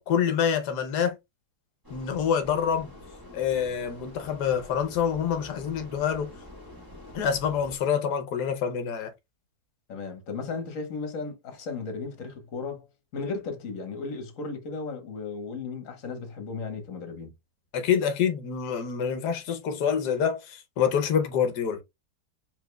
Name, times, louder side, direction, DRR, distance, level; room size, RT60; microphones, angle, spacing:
voice 1, 0.1-1.1 1.9-2.9 3.3-6.3 7.1-9.1 17.7-21.8, left 7 dB, 90° left, 1.4 m, -26 dB
sound 1, 1.8-7.8, left 1 dB, 15° right, 1.4 m, -46 dB
voice 2, 9.9-12.9 13.1-17.3, left 4 dB, 55° left, 1.5 m, -35 dB
4.9 x 3.7 x 2.3 m
omnidirectional pair, 1.7 m